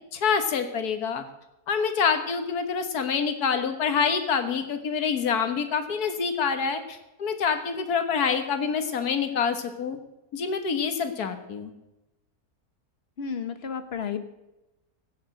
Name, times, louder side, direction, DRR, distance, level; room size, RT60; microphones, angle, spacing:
voice 1, 0.1-1.2 1.7-10.0 10.3-11.7, left 6 dB, 85° left, 8 dB, 1.8 m, -26 dB
voice 2, 13.2-14.2, left 6 dB, 45° left, 10 dB, 1.3 m, -32 dB
16.0 x 7.1 x 7.6 m, 0.94 s
omnidirectional pair, 1.6 m